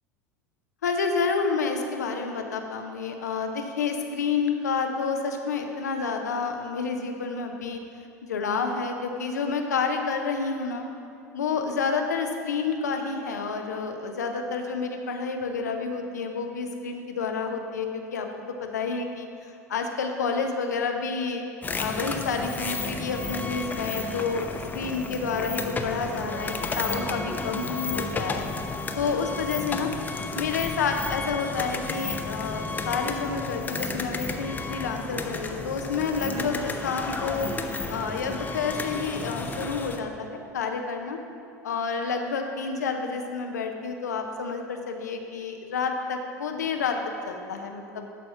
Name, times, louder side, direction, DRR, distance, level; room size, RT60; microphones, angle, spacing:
voice 1, 0.8-7.8 8.2-10.9 11.3-18.3 18.6-21.4 21.8-24.5 24.7-28.5 28.9-29.9 30.3-37.5 37.9-41.2 41.6-47.0 47.2-48.1, left 5 dB, 80° left, 4 dB, 0.8 m, -29 dB
sound 1, 21.6-40.0, left 3 dB, 20° left, 0.7 m, -32 dB
11.5 x 4.3 x 5.6 m, 2.6 s
figure-of-eight pair, 75°, 9 cm